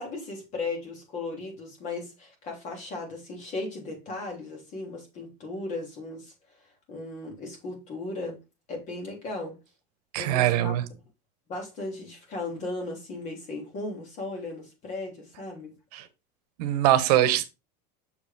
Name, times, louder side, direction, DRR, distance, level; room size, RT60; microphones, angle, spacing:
voice 1, 0.0-6.3 6.9-8.4 8.7-9.6 10.2-10.7 11.5-15.7 17.2-17.3, left 2 dB, 35° left, 3.1 m, -36 dB
voice 2, 10.1-10.8 15.9-16.0 16.6-17.4, right 13 dB, 70° right, 1.0 m, -22 dB
6.7 x 5.0 x 3.5 m
supercardioid pair, 155°, 21 cm